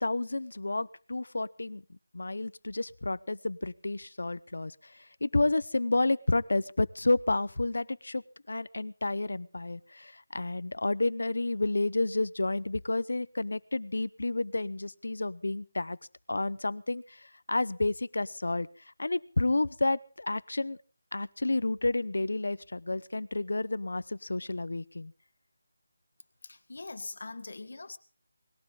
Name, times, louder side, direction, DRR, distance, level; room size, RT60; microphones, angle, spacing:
voice 1, 0.0-1.8 2.1-4.9 5.2-16.0 16.3-17.2 17.5-18.7 19.0-20.8 21.1-25.1, left 2 dB, 80° left, 18 dB, 0.8 m, -30 dB
voice 2, 26.4-28.0, left 3 dB, 55° left, 10 dB, 1.6 m, -42 dB
20.5 x 15.5 x 3.9 m, 0.38 s
figure-of-eight pair, 175°, 0 cm